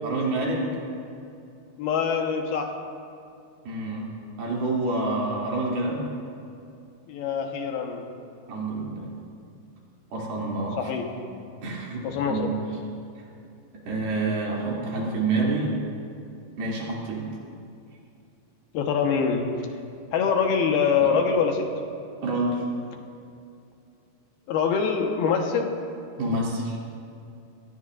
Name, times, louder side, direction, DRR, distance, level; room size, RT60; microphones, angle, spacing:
voice 1, 0.0-0.8 3.6-4.1 4.4-6.1 8.5-9.1 10.1-10.9 11.6-12.6 13.9-15.8 16.6-17.3 21.0-21.1 22.2-22.6 26.2-26.8, right 2 dB, 75° right, -4 dB, 4.8 m, -28 dB
voice 2, 1.8-2.7 7.1-8.0 10.8-11.0 12.0-12.5 18.7-19.5 20.1-21.7 24.5-25.7, left 6 dB, 80° left, 2 dB, 3.2 m, -24 dB
24.5 x 19.5 x 2.6 m, 2.5 s
omnidirectional pair, 4.4 m